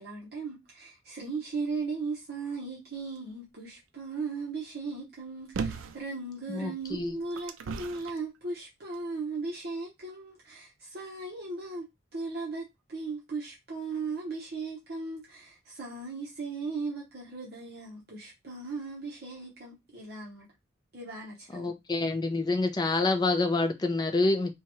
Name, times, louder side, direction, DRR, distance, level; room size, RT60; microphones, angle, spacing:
voice 1, 0.0-11.9 12.1-20.5 20.9-21.8, right 4 dB, 50° right, 0.8 m, -37 dB
sound 1, 5.5-6.0 6.8-8.2 8.9-9.0, right 5 dB, 75° right, 0.4 m, -36 dB
voice 2, 6.5-7.2 21.5-24.5, left 3 dB, 20° left, 0.3 m, -27 dB
2.8 x 2.2 x 2.9 m
head